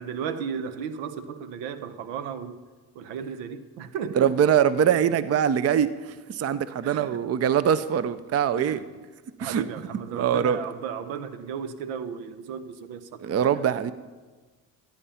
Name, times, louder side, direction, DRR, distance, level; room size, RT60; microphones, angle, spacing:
voice 1, 0.0-2.6 2.9-4.3 6.8-7.2 8.6-8.8 9.4-13.6, right 7 dB, 75° right, 0.9 m, -35 dB
voice 2, 4.1-8.8 9.4-9.7 10.1-10.6 13.2-13.9, right 8 dB, 30° right, 0.6 m, -23 dB
13.5 x 8.7 x 5.7 m
hypercardioid pair, 60°, 49 cm